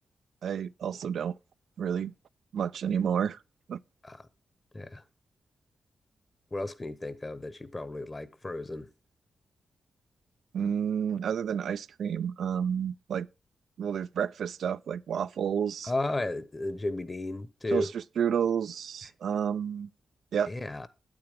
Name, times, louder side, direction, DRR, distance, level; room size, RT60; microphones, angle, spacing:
voice 1, 0.4-1.4 1.8-2.1 2.5-3.4 3.7-3.8 10.5-13.3 13.8-15.9 17.7-17.9 18.2-19.9 20.3-20.5, right 8 dB, 80° right, 0.3 m, -30 dB
voice 2, 6.5-8.9 15.8-17.9 20.5-20.9, left 2 dB, 25° left, 1.0 m, -34 dB
8.7 x 8.7 x 3.5 m
cardioid pair, 75°, 0 cm